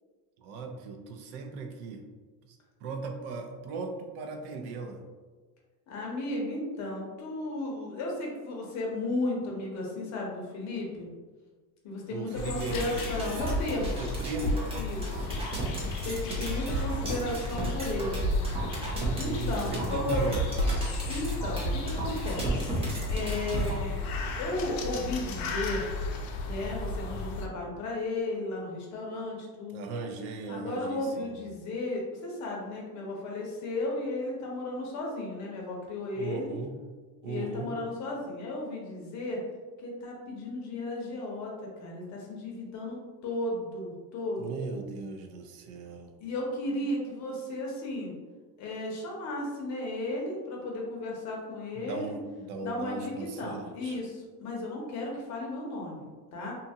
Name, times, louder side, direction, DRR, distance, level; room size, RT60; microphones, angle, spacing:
voice 1, 0.4-2.0 2.4-5.0 12.1-13.4 14.0-14.7 19.2-20.4 29.7-31.3 36.2-36.7 37.2-37.7 44.4-46.1 51.7-54.0, right 4 dB, 75° right, 4 dB, 0.6 m, -37 dB
voice 2, 5.9-11.1 11.8-14.0 14.7-15.4 16.0-18.3 19.1-20.2 21.1-24.0 24.4-25.9 26.5-29.8 30.5-36.5 37.2-39.4 39.8-41.5 41.8-44.5 46.2-48.1 48.6-52.2 52.6-56.5, left 2 dB, 40° left, -1 dB, 0.7 m, -34 dB
sound 1, 12.3-27.5, left 2 dB, 85° left, 0.6 m, -34 dB
sound 2, 12.6-23.8, right 2 dB, 15° right, 0.4 m, -34 dB
2.7 x 2.4 x 2.7 m, 1.4 s
cardioid pair, 145°, 44 cm